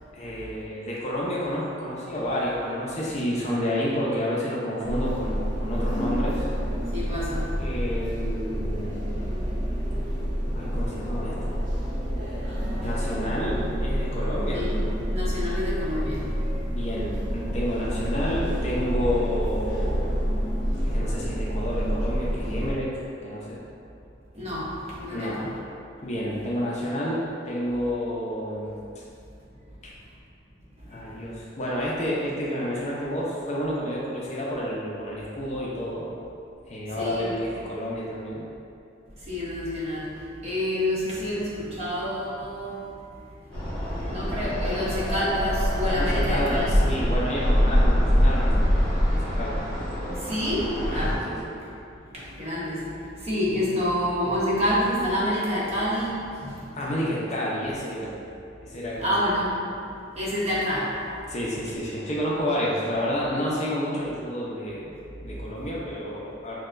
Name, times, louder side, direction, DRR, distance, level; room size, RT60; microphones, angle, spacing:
voice 1, 0.1-6.5 7.6-9.3 10.5-11.6 12.8-14.7 16.7-20.1 20.8-22.9 23.2-23.6 25.1-25.4 26.0-29.0 29.8-29.9 30.8-36.0 36.7-38.4 45.9-48.8 49.1-49.9 50.8-51.5 56.7-58.1 58.6-59.2 61.3-66.6, equal, 35° left, -5 dB, 0.5 m, -30 dB
sound 1, 4.8-22.7, equal, 80° right, 1.0 m, -28 dB
voice 2, 6.9-7.5 12.5-12.7 14.5-14.8 15.0-16.3 24.3-25.5 31.1-31.2 37.0-37.3 39.2-40.1 40.4-42.9 43.4-46.7 50.1-51.2 52.0-52.9 53.2-56.8 59.0-59.6 60.2-61.3 65.6-65.7, left 1 dB, 35° right, -7 dB, 0.9 m, -28 dB
sound 2, 43.5-51.1, equal, 5° left, 1.3 m, -24 dB
6.2 x 2.2 x 2.5 m, 2.6 s
head